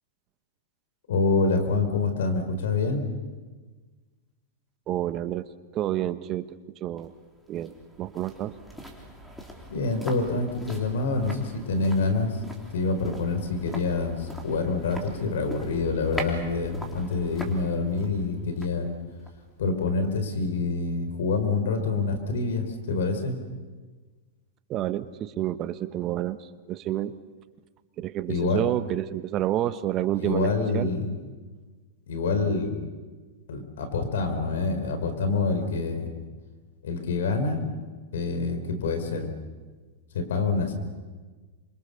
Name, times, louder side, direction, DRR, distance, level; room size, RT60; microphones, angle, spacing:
voice 1, 1.1-3.0 9.7-12.4 12.7-18.9 19.6-23.3 28.3-28.6 30.2-31.1 32.1-32.7 33.5-36.1 36.8-37.6 38.1-39.3 40.1-40.7, left 3 dB, 75° left, 7 dB, 4.5 m, -26 dB
voice 2, 4.9-5.5 5.7-7.1 7.5-8.5 24.7-27.2 28.0-30.9, right 13 dB, 35° right, 13 dB, 1.0 m, -29 dB
sound 1, 7.0-20.1 20.4-20.5, right 1 dB, ahead, 3.6 m, -42 dB
27.5 x 24.0 x 6.9 m, 1.4 s
hypercardioid pair, 115°, 0 cm